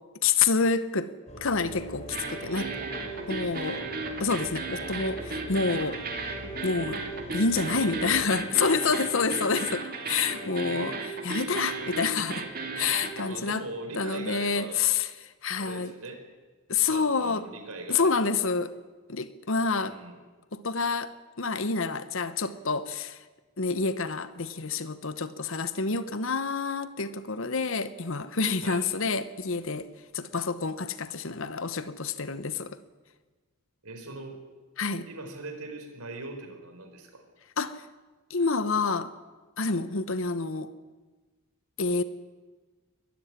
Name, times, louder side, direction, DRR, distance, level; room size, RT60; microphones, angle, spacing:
voice 1, 0.2-1.1 1.4-2.7 3.3-3.8 4.2-6.0 6.6-7.1 7.3-12.5 12.8-13.6 13.9-15.9 16.7-17.5 17.9-18.7 19.1-20.0 20.5-23.2 23.6-29.9 30.1-32.8 34.8-35.1 37.6-37.8 38.3-39.1 39.6-40.7 41.8-42.0, left 4 dB, 60° left, 1.0 m, -28 dB
sound 1, 1.3-8.3, right 1 dB, 30° left, 3.4 m, -43 dB
sound 2, 2.1-13.3, right 3 dB, 45° right, 2.8 m, -35 dB
voice 2, 2.4-3.1 7.8-8.4 13.2-14.8 15.6-16.2 16.9-18.3 19.6-20.1 28.6-28.9 33.8-34.4 35.1-37.2, right 2 dB, 90° right, 4.5 m, -41 dB
23.0 x 13.5 x 9.7 m
head